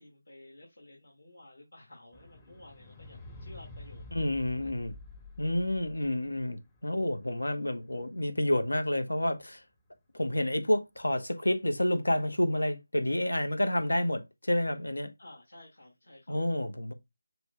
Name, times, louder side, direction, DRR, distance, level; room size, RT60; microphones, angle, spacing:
voice 1, 0.0-4.3 4.6-4.7 5.9-6.0 15.2-16.4, left 1 dB, 60° left, 1.9 m, -53 dB
sound 1, 2.1-8.6 9.4-9.5, left 2 dB, 10° left, 0.7 m, -49 dB
voice 2, 4.1-4.9 5.4-9.6 10.1-15.1 16.3-16.9, left 1 dB, 80° left, 0.9 m, -29 dB
6.0 x 2.3 x 3.6 m
figure-of-eight pair, 160°, 0 cm